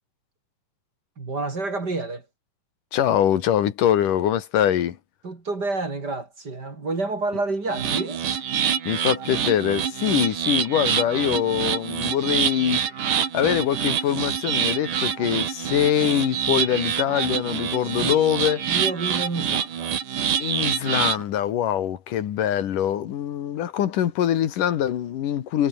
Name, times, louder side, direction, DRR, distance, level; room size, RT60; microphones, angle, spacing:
voice 1, 1.2-2.2 5.2-8.2 17.9-18.2 18.6-19.9, right 3 dB, 30° right, 3.4 m, -29 dB
voice 2, 2.9-5.0 8.9-12.8 13.3-18.6 20.4-25.7, left 10 dB, 80° left, 3.3 m, -23 dB
sound 1, 7.7-21.2, right 8 dB, 75° right, 4.1 m, -26 dB
omnidirectional pair, 3.7 m